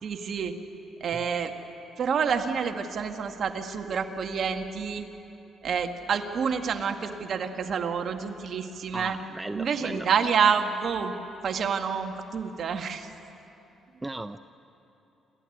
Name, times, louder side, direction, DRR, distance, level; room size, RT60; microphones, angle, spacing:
voice 1, 0.0-0.5 1.0-1.5 2.0-5.1 5.6-9.2 9.5-11.1 11.4-13.1, right 6 dB, 60° right, 5 dB, 1.7 m, -28 dB
voice 2, 8.9-10.1 14.0-14.4, right 2 dB, 15° right, 10 dB, 0.6 m, -36 dB
28.0 x 14.5 x 9.9 m, 2.9 s
cardioid pair, 90°, 0 cm